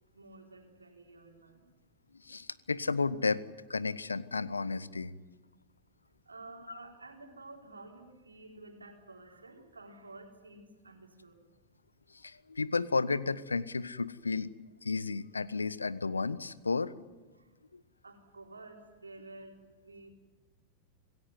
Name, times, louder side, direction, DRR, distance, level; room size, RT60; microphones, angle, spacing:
voice 1, 0.1-1.6 6.3-11.3 17.3-17.5 18.0-20.1, right 2 dB, 80° right, 2 dB, 4.0 m, -51 dB
voice 2, 2.2-3.4 3.7-5.1 6.7-6.8 12.2-14.5 14.8-16.9 17.7-17.8, left 4 dB, 75° left, 18 dB, 0.9 m, -32 dB
26.0 x 17.0 x 9.7 m, 1.2 s
figure-of-eight pair, 90°, 0 cm